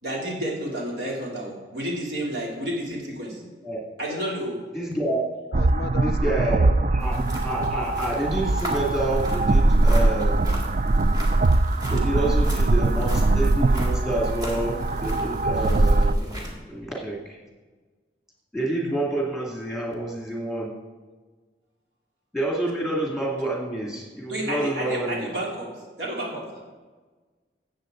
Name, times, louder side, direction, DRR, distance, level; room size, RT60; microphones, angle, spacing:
voice 1, 0.0-3.4 4.0-4.6 24.3-25.7 26.0-26.6, right 1 dB, 75° right, -3 dB, 3.5 m, -30 dB
voice 2, 4.1-4.4 5.5-6.2 6.6-6.8, left 5 dB, 60° left, 15 dB, 0.4 m, -36 dB
voice 3, 4.7-5.2 6.0-10.7 11.9-17.4 18.5-20.7 22.3-25.3, right 1 dB, ahead, -3 dB, 2.5 m, -28 dB
sound 1, 5.5-16.1, right 2 dB, 45° right, 0.4 m, -21 dB
sound 2, 7.0-16.5, equal, 20° right, 2.1 m, -37 dB
16.0 x 7.7 x 4.0 m, 1.3 s
head